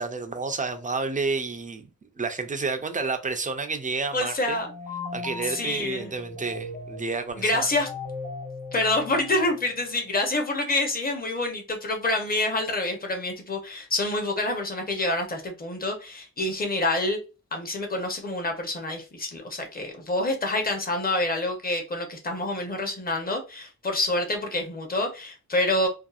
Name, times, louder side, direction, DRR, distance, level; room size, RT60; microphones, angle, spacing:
voice 1, 0.0-1.8 2.2-4.6 5.1-7.7, right 4 dB, 25° right, 0.3 m, -30 dB
voice 2, 4.1-4.7 5.4-6.1 7.3-7.9 8.7-17.2 17.5-25.9, left 2 dB, 30° left, 0.7 m, -27 dB
sound 1, 4.4-9.9, left 3 dB, 85° left, 1.2 m, -38 dB
2.6 x 2.3 x 2.3 m
wide cardioid pair, 125°, 31 cm